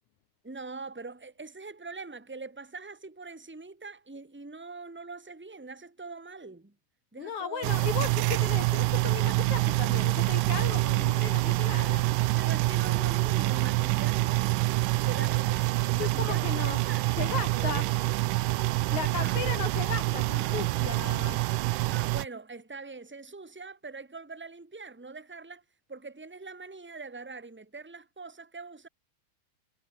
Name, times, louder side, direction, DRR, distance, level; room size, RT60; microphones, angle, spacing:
voice 1, 0.4-6.7 7.1-8.3 12.3-14.4 15.0-18.2 19.2-19.6 20.3-21.2 21.9-25.6 25.9-28.9, right 3 dB, 5° right, 1.9 m, -43 dB
voice 2, 7.2-12.0 16.0-16.8 17.2-17.9 18.9-21.4, left 8 dB, 60° left, 3.0 m, -36 dB
sound 1, 7.6-22.3, right 19 dB, 85° right, 2.2 m, -26 dB
omnidirectional pair, 3.9 m